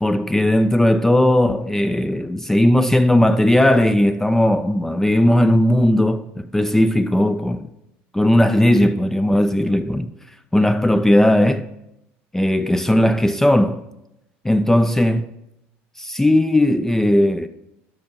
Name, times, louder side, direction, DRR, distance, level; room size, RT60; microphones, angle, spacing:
voice 1, 0.0-7.7 8.1-10.1 10.5-11.7 12.3-13.8 14.4-15.3 16.0-17.5, left 1 dB, 5° left, 0.3 m, -17 dB
10.5 x 3.6 x 5.7 m
supercardioid pair, 95°, 6 cm